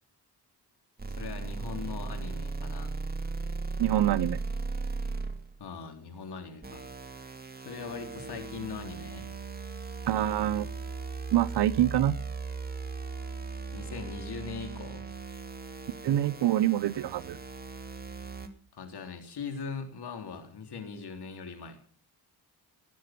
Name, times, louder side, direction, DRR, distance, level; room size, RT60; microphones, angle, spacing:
sound 1, 1.0-5.5 6.6-18.5, right 4 dB, 25° right, 2.6 m, -37 dB
voice 1, 1.2-3.0 5.6-6.9 7.6-9.3 13.7-15.1 18.7-21.8, left 5 dB, 75° left, 6 dB, 3.6 m, -40 dB
voice 2, 3.8-4.4 10.1-10.7 11.3-12.2 16.0-17.4, right 12 dB, 90° right, 17 dB, 0.9 m, -25 dB
18.5 x 10.5 x 6.0 m, 0.42 s
cardioid pair, 75°, 40 cm